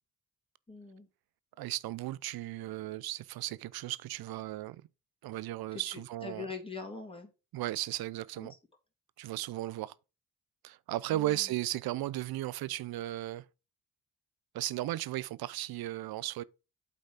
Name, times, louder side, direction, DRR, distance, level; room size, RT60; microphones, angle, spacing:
voice 1, 0.7-1.1 5.7-5.8 6.2-7.3 8.4-8.5 11.1-11.4, left 4 dB, 15° left, 2.7 m, -42 dB
voice 2, 1.6-4.8 5.2-6.5 7.5-8.5 9.2-9.9 10.6-13.5 14.5-16.4, right 15 dB, 75° right, 0.6 m, -35 dB
8.2 x 4.2 x 5.0 m
supercardioid pair, 50°, 37 cm